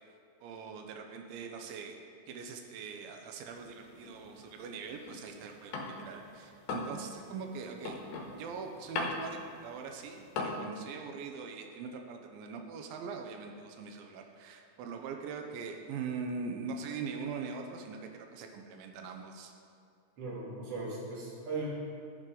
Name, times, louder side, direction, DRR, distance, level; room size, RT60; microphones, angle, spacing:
voice 1, 0.4-2.0 2.3-8.0 8.3-19.5, right 5 dB, 90° right, 4 dB, 2.5 m, -42 dB
sound 1, 3.5-6.2 6.5-10.6, left 3 dB, 70° left, 2.0 m, -39 dB
voice 2, 20.2-21.7, right 3 dB, 45° right, -6 dB, 2.5 m, -38 dB
13.5 x 5.6 x 3.8 m, 2.4 s
omnidirectional pair, 4.1 m